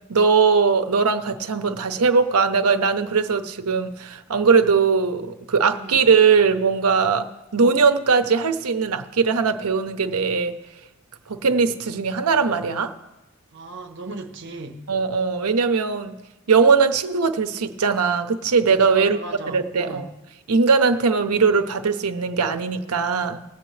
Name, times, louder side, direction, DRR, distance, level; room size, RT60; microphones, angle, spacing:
voice 1, 0.1-7.3 7.5-10.6 11.3-12.9 14.9-16.2 16.5-20.1 20.5-23.4, right 5 dB, 90° right, 0.8 m, -20 dB
voice 2, 13.5-14.8 18.9-20.1, right 2 dB, 55° right, 0.9 m, -37 dB
20.5 x 8.0 x 3.3 m
head